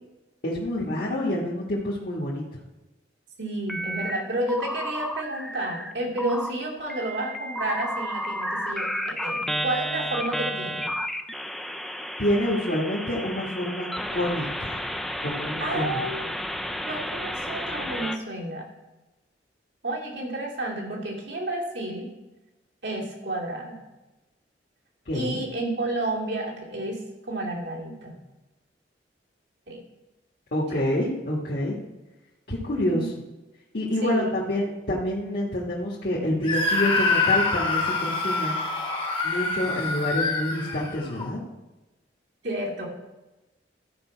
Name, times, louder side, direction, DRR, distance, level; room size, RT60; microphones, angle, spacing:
voice 1, 0.4-2.4 12.2-14.8 15.2-16.0 25.0-25.4 30.5-31.8 32.5-33.1 33.7-38.6 39.2-41.4, left 1 dB, 55° left, -5 dB, 1.5 m, -27 dB
voice 2, 3.4-10.9 15.6-16.3 16.8-18.7 19.8-22.1 22.8-23.8 25.1-28.2 29.7-29.8 30.7-30.8 32.7-33.1 34.0-34.3 42.4-42.9, right 1 dB, 80° right, -2 dB, 2.5 m, -31 dB
sound 1, 3.7-4.2 4.5-5.9 6.2-6.5 6.9-18.2, equal, ahead, 0.4 m, -32 dB
Screaming, 36.4-41.3, left 3 dB, 30° left, 1.2 m, -26 dB
13.0 x 5.4 x 4.5 m, 1.1 s
head